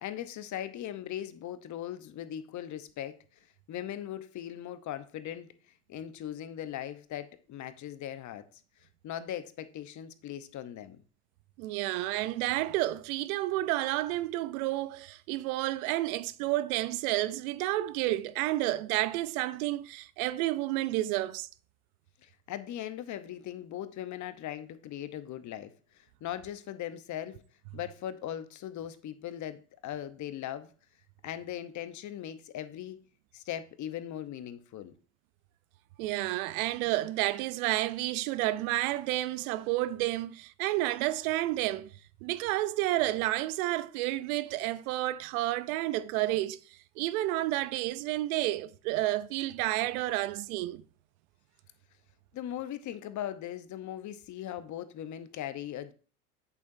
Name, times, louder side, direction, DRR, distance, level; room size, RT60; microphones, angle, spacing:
voice 1, 0.0-3.2 3.7-5.5 5.9-8.5 9.0-11.0 22.2-27.4 27.7-30.7 31.2-33.0 33.3-34.9 52.3-55.9, left 11 dB, 40° left, 0.9 m, -39 dB
voice 2, 11.6-21.5 36.0-41.9 42.2-46.6 47.0-50.8, right 16 dB, 70° right, 0.7 m, -30 dB
8.4 x 6.8 x 2.7 m
hypercardioid pair, 90°, 45 cm